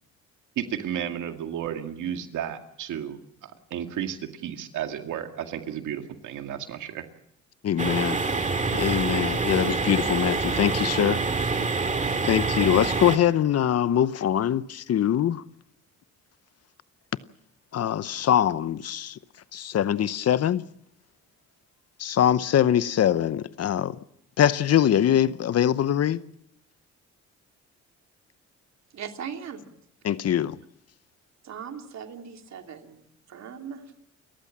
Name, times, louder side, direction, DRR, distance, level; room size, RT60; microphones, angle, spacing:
voice 1, 0.6-7.1, right 9 dB, 80° right, 2.2 m, -33 dB
voice 2, 7.6-8.2 8.7-11.2 12.2-15.4 17.7-19.2 19.5-20.6 22.0-24.0 24.4-26.2 30.0-30.6, left 10 dB, 55° left, 0.8 m, -23 dB
sound 1, 7.8-13.2, right 4 dB, 25° right, 2.1 m, -26 dB
voice 3, 28.9-29.7 31.4-33.8, right 7 dB, 65° right, 3.0 m, -39 dB
29.0 x 14.5 x 7.4 m
cardioid pair, 90°, 30 cm